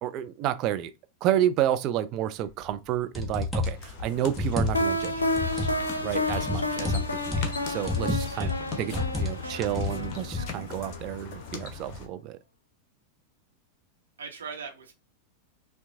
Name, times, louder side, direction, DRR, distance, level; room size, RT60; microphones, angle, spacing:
voice 1, 0.0-0.9 1.2-5.1 6.0-8.5 8.8-12.4, right 11 dB, 40° right, 0.5 m, -30 dB
sound 1, 2.7-2.8 3.1-3.8 4.3-5.0 5.3-5.8 6.3-7.6 7.9-8.6 8.9-9.3 9.6-10.5, left 3 dB, ahead, 1.3 m, -29 dB
sound 2, 3.5-12.1, left 4 dB, 40° left, 1.0 m, -40 dB
sound 3, 4.7-11.5, left 1 dB, 80° left, 0.6 m, -31 dB
voice 2, 9.4-9.7 14.2-14.9, right 5 dB, 70° right, 1.0 m, -41 dB
5.6 x 2.3 x 2.7 m
figure-of-eight pair, 90°, 0 cm